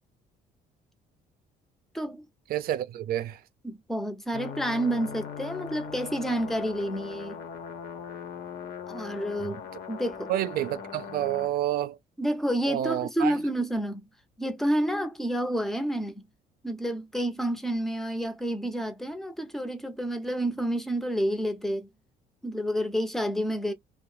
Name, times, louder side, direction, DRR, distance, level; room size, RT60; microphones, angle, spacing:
voice 1, 1.9-2.2 3.6-7.4 8.9-9.6 9.9-10.3 12.2-14.0 14.4-16.2 16.6-21.9 22.4-23.7, right 1 dB, ahead, 0.7 m, -29 dB
voice 2, 2.5-3.4 9.4-9.5 10.3-12.0 12.6-13.4, right 12 dB, 60° right, 0.5 m, -29 dB
sound 1, 4.3-11.5, left 7 dB, 65° left, 0.9 m, -40 dB
2.6 x 2.1 x 3.2 m
cardioid pair, 110°, 17 cm